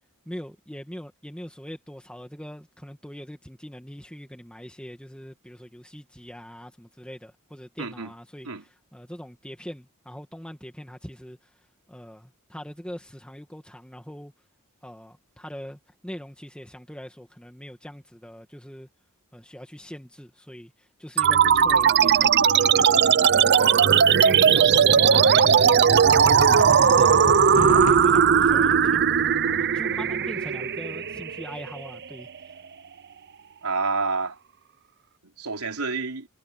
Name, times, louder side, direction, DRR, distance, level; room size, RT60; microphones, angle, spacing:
voice 1, 0.3-11.6 11.9-14.3 14.8-18.9 19.3-29.2 29.6-32.5, equal, 5° left, 1.9 m, -42 dB
voice 2, 7.8-8.1 8.4-8.6 33.6-34.4 35.4-36.3, right 3 dB, 80° right, 3.9 m, -28 dB
sound 1, 21.2-32.1, right 7 dB, 50° right, 0.7 m, -18 dB
Thunder, 27.4-31.3 31.6-31.7, left 2 dB, 80° left, 2.0 m, -36 dB
head